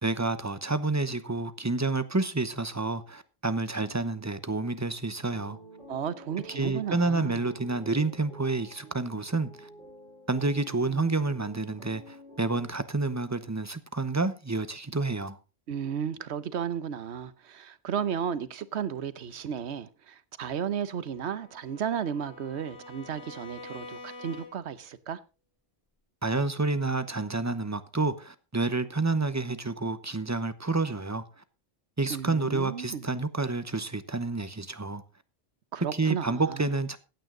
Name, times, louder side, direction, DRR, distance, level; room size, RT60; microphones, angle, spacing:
voice 1, 0.0-5.6 6.6-9.7 10.3-15.4 26.2-31.2 32.0-35.0 35.9-37.0, right 3 dB, 15° right, 0.7 m, -29 dB
sound 1, 5.2-12.7, equal, 50° left, 6.3 m, -50 dB
voice 2, 5.9-7.4 15.7-25.2 32.1-33.1 35.7-36.7, right 8 dB, 75° right, 1.1 m, -34 dB
Bowed string instrument, 21.0-24.8, left 2 dB, 65° left, 3.8 m, -46 dB
15.5 x 9.2 x 3.8 m
omnidirectional pair, 1.1 m